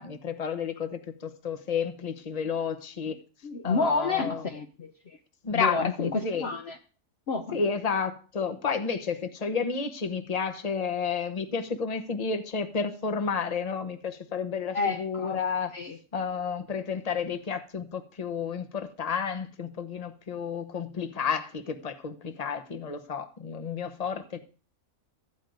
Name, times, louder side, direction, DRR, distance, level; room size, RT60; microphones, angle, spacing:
voice 1, 0.0-3.2 3.6-4.4 5.4-6.5 7.5-15.7 16.1-24.4, left 6 dB, 30° left, 8 dB, 1.0 m, -31 dB
voice 2, 3.4-5.2 5.5-6.8 7.3-7.6 14.7-15.4 15.7-16.0, left 4 dB, 55° left, 6 dB, 1.0 m, -30 dB
14.0 x 5.0 x 9.3 m, 0.38 s
omnidirectional pair, 1.4 m